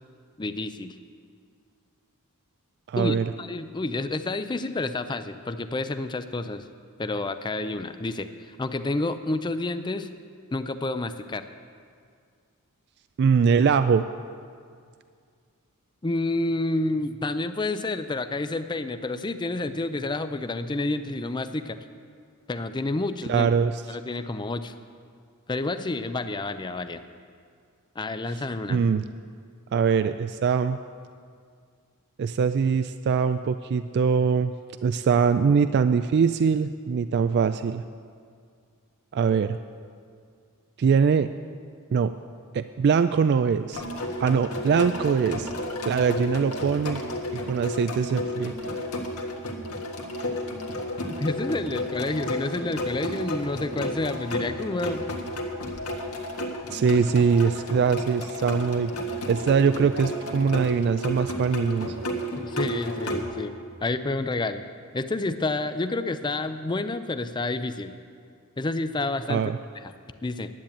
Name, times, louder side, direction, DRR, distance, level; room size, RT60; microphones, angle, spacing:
voice 1, 0.4-1.0 3.0-6.6 7.0-10.1 10.5-11.4 16.0-21.8 22.5-23.5 23.9-24.7 25.5-27.0 28.0-28.8 51.1-55.1 62.4-63.5 63.8-64.6 64.9-67.9 68.6-69.5 69.8-69.9 70.2-70.5, left 2 dB, 20° left, 10 dB, 0.5 m, -29 dB
voice 2, 2.9-3.2 13.2-14.0 23.3-23.8 28.7-29.0 29.7-30.8 32.2-34.5 34.8-37.8 39.1-39.6 40.8-41.3 41.9-42.1 42.5-43.8 44.2-45.5 45.8-47.0 47.5-48.5 56.7-58.9 59.3-61.9 69.3-69.6, right 6 dB, 50° right, 11 dB, 0.3 m, -22 dB
sound 1, 43.7-63.2, left 1 dB, 75° left, 1.5 m, -32 dB
10.5 x 8.8 x 8.7 m, 2.2 s
head